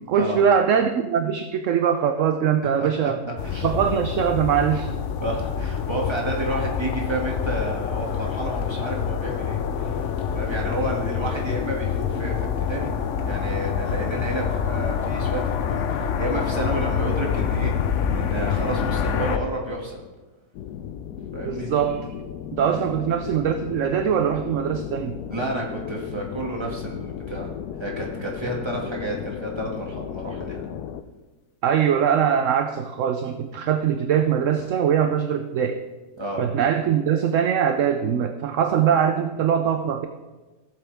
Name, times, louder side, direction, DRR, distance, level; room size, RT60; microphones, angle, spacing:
voice 1, 0.0-3.2 3.6-4.9 21.4-22.0 22.5-25.2 31.6-35.8 36.4-40.1, right 8 dB, 65° right, 7 dB, 0.9 m, -22 dB
voice 2, 2.8-3.1 3.4-3.7 5.2-12.9 13.2-17.7 18.1-20.0 21.3-21.7 22.7-22.9 25.3-27.5 27.8-30.7 36.2-36.4, right 1 dB, 15° right, -2 dB, 2.1 m, -30 dB
sound 1, 3.4-19.4, left 7 dB, 60° left, 1.0 m, -26 dB
sound 2, 20.5-31.0, left 8 dB, 80° left, 1.1 m, -35 dB
17.0 x 7.5 x 3.5 m, 1.2 s
omnidirectional pair, 1.7 m